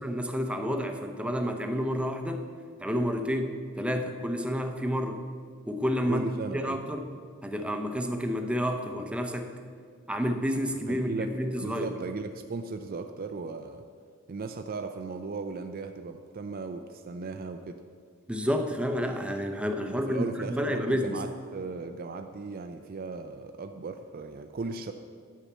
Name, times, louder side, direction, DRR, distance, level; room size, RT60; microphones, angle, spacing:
voice 1, 0.0-2.5 2.8-5.2 5.7-7.1 7.4-9.5 10.1-11.9 18.3-21.2, equal, 5° right, 5 dB, 0.6 m, -30 dB
voice 2, 6.1-6.8 10.9-11.3 11.6-13.8 14.3-17.8 19.9-24.9, right 4 dB, 45° right, 6 dB, 0.4 m, -37 dB
10.0 x 5.6 x 7.3 m, 2.1 s
head